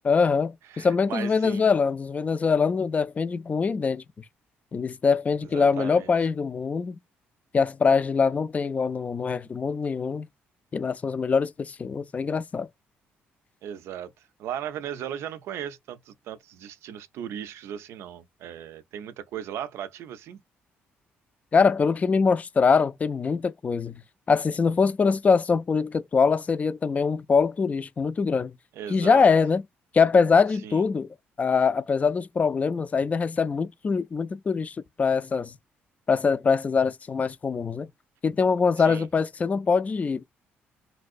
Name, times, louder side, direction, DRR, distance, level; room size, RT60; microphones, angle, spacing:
voice 1, 0.0-4.0 4.7-7.0 7.5-10.3 10.7-12.7 21.5-24.0 24.3-28.5 28.9-29.6 29.9-31.1 31.4-35.6 36.1-37.9 38.2-40.2, left 5 dB, 30° left, 0.4 m, -23 dB
voice 2, 0.7-1.6 5.4-6.1 13.6-20.4 28.7-29.3 30.6-30.8 38.8-39.1, right 9 dB, 75° right, 0.4 m, -37 dB
3.2 x 2.6 x 2.4 m
cardioid pair, 90°, 5 cm